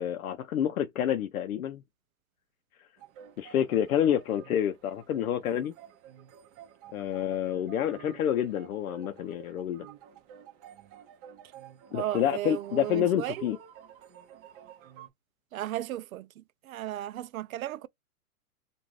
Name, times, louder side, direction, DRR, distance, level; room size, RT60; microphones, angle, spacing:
voice 1, 0.0-1.8 3.4-5.7 6.9-9.9 11.9-13.6, left 10 dB, 75° left, 0.6 m, -28 dB
sound 1, 3.0-15.1, right 9 dB, 25° right, 0.6 m, -51 dB
voice 2, 11.9-13.5 15.5-17.9, right 13 dB, 75° right, 0.5 m, -35 dB
2.6 x 2.4 x 3.1 m
hypercardioid pair, 135°, 42 cm